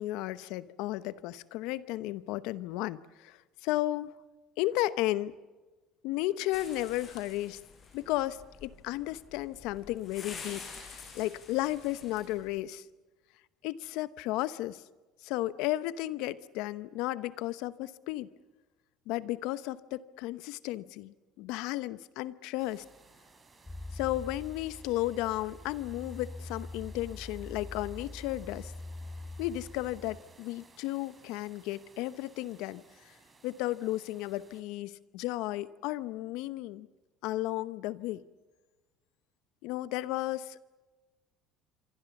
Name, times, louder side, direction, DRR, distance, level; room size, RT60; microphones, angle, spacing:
voice 1, 0.0-4.1 4.6-5.3 6.0-7.6 7.9-12.9 13.6-14.8 15.2-18.3 19.1-22.8 23.9-28.7 29.4-33.2 33.4-36.9 37.2-38.2 39.6-40.7, left 16 dB, 75° left, 16 dB, 0.9 m, -34 dB
sound 1, 6.5-12.6, left 5 dB, 40° left, 6.4 m, -48 dB
sound 2, 22.6-34.6, right 4 dB, 30° right, 4.3 m, -59 dB
sound 3, 23.6-30.2, left 2 dB, 15° left, 7.1 m, -44 dB
27.0 x 24.5 x 7.2 m, 1.2 s
supercardioid pair, 85°, 0 cm